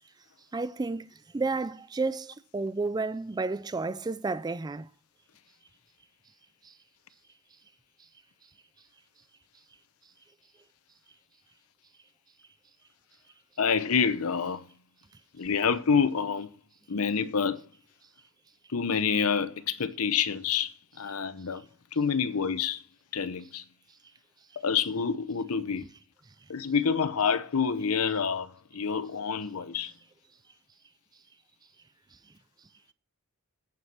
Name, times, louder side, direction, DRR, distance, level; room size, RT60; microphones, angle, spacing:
voice 1, 0.5-1.1 1.3-4.9, right 3 dB, 20° right, 0.4 m, -31 dB
voice 2, 13.6-14.6 15.4-16.5 16.9-17.6 18.7-21.6 21.9-22.8 23.1-23.6 24.6-25.9 26.5-29.9, left 6 dB, 80° left, 0.8 m, -27 dB
9.0 x 7.3 x 5.5 m
head